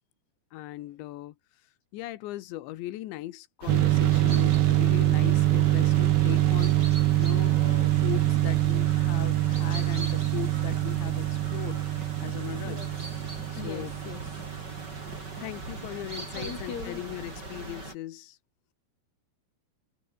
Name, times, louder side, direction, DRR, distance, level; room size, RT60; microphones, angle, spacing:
voice 1, 0.5-1.4 1.9-11.8 12.2-12.8 13.5-14.0 15.4-18.4, left 15 dB, 90° left, 3.5 m, -38 dB
sound 1, 3.6-17.9, right 2 dB, 20° right, 8.4 m, -41 dB
sound 2, 3.7-16.1, right 14 dB, 75° right, 3.2 m, -25 dB
voice 2, 13.6-14.2 16.4-17.0, left 7 dB, 65° left, 5.9 m, -39 dB
omnidirectional pair, 5.0 m